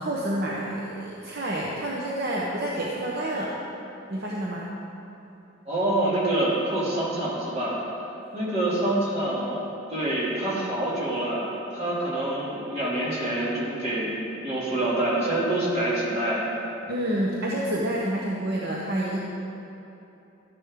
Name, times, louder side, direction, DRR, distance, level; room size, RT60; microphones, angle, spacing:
voice 1, 0.0-3.5 4.1-4.7 16.9-19.2, right 1 dB, 55° right, -4 dB, 1.0 m, -28 dB
voice 2, 5.7-7.8 8.3-9.6 9.9-14.1 14.4-16.4, right 1 dB, 30° right, -6 dB, 2.7 m, -26 dB
13.5 x 10.0 x 3.7 m, 2.9 s
head